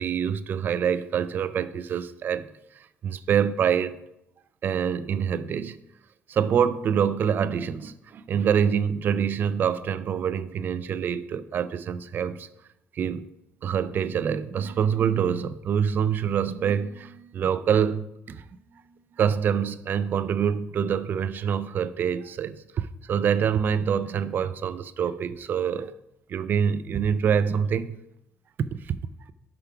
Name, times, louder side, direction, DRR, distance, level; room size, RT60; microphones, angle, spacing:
voice 1, 0.0-2.5 2.8-4.0 4.6-5.8 6.3-12.5 12.9-13.3 13.6-18.4 19.2-26.0 26.3-28.0 28.6-29.0, right 8 dB, 45° right, 0.3 m, -26 dB
5.9 x 5.0 x 5.7 m
cardioid pair, 170°, 5 cm